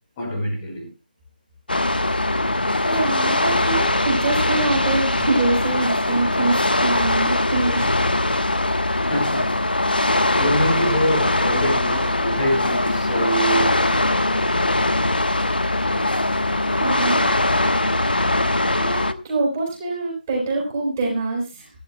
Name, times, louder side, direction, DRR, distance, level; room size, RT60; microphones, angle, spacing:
voice 1, 0.2-0.9 9.1-9.6 10.3-14.1, equal, 15° left, -1 dB, 4.9 m, -25 dB
sound 1, 1.7-19.1, left 2 dB, 70° left, 1.2 m, -21 dB
voice 2, 2.8-8.0 16.7-17.3 18.7-21.7, right 2 dB, 20° right, -1 dB, 4.4 m, -24 dB
23.5 x 12.0 x 2.3 m, 0.29 s
figure-of-eight pair, 160°, 5 cm